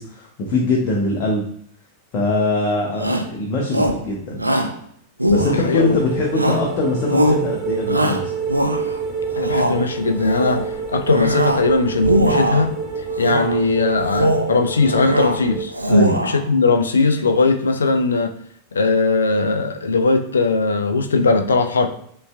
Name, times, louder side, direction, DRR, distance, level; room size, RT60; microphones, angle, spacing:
voice 1, 0.0-1.5 2.1-4.4 5.2-8.3 15.9-16.2, left 2 dB, 40° left, -1 dB, 0.9 m, -22 dB
Shout, 3.0-3.3 3.7-4.1 4.4-4.8 5.2-5.9 6.3-6.7 7.1-7.4 7.9-9.0 9.4-9.8 10.2-10.7 11.1-11.7 12.0-12.7 13.2-13.6 14.0-14.5 14.8-15.4 15.7-16.4, equal, 85° right, 0.4 m, -20 dB
sound 1, 5.3-15.6, right 5 dB, 5° left, 1.2 m, -27 dB
voice 2, 5.5-6.0 9.4-10.6 10.9-15.7 16.2-18.3 18.7-21.9, left 3 dB, 70° left, 7 dB, 0.4 m, -19 dB
5.3 x 3.2 x 2.3 m, 0.65 s
figure-of-eight pair, 90°, 0 cm